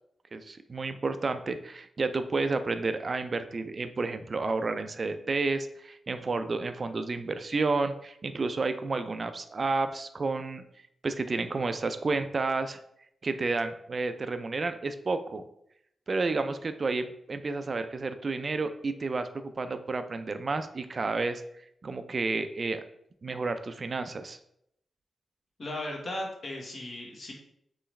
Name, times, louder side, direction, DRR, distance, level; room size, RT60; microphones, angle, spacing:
voice 1, 0.3-10.6 11.0-12.8 13.2-15.4 16.1-21.4 21.8-22.8 23.2-24.4, right 3 dB, 45° right, 9 dB, 0.4 m, -31 dB
voice 2, 25.6-27.3, left 1 dB, 55° left, -1 dB, 1.2 m, -36 dB
4.6 x 3.2 x 3.2 m, 0.74 s
cardioid pair, 85°, 0 cm